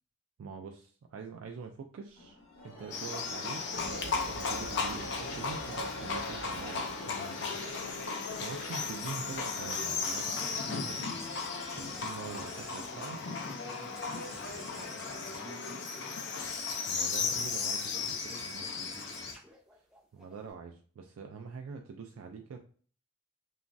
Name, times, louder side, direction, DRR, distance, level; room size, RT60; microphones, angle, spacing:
voice 1, 0.4-2.4 2.6-13.2 16.9-18.8 19.7-19.8 20.1-22.7, right 5 dB, 85° right, 3 dB, 0.3 m, -45 dB
sound 1, 2.2-13.7, equal, 85° left, 0.8 m, -44 dB
Livestock farm animals working animals, 2.9-19.3, left 5 dB, 55° left, 0.5 m, -36 dB
sound 2, 11.2-13.6 13.9-15.9 16.4-16.8 17.2-17.6 18.0-20.5, left 1 dB, 5° right, 0.6 m, -50 dB
voice 2, 12.5-16.2 17.8-19.4, right 1 dB, 60° right, 1 dB, 1.0 m, -51 dB
2.9 x 2.3 x 2.5 m, 0.43 s
head